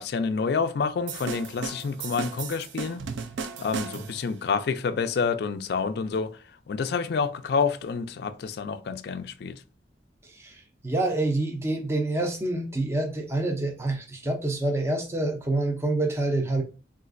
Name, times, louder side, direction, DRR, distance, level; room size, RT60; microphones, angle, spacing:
voice 1, 0.0-3.1 3.6-9.6, left 5 dB, 55° left, 0.3 m, -28 dB
sound 1, 1.1-4.3, right 5 dB, 75° right, 0.4 m, -35 dB
voice 2, 10.2-16.6, right 2 dB, 15° right, 0.5 m, -27 dB
3.9 x 2.4 x 2.5 m
head